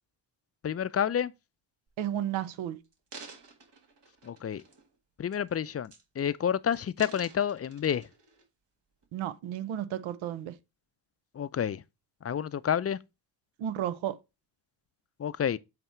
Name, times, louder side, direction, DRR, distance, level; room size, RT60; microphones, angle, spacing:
voice 1, 0.6-1.3 4.2-4.6 5.2-8.1 11.3-11.8 12.2-13.0 15.2-15.6, left 8 dB, 35° left, 0.4 m, -29 dB
sound 1, 1.9-2.2 2.8-4.9 5.3-5.5 5.8-6.4 6.7-8.4 9.0-9.1, right 4 dB, 60° right, 1.7 m, -51 dB
voice 2, 2.0-2.8 9.1-10.5 13.6-14.1, right 11 dB, 85° right, 0.7 m, -33 dB
7.7 x 2.9 x 4.4 m
supercardioid pair, 45°, 46 cm